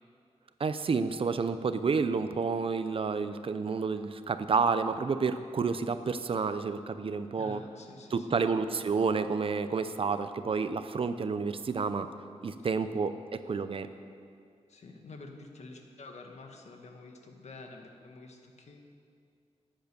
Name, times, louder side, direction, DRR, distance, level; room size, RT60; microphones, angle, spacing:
voice 1, 0.6-7.6 8.1-12.1 12.4-13.9, right 5 dB, 50° right, 11 dB, 0.7 m, -30 dB
voice 2, 7.4-8.5 12.6-12.7 14.7-18.8, left 3 dB, 75° left, 3 dB, 1.6 m, -49 dB
14.0 x 10.5 x 6.9 m, 2.3 s
wide cardioid pair, 125°, 12 cm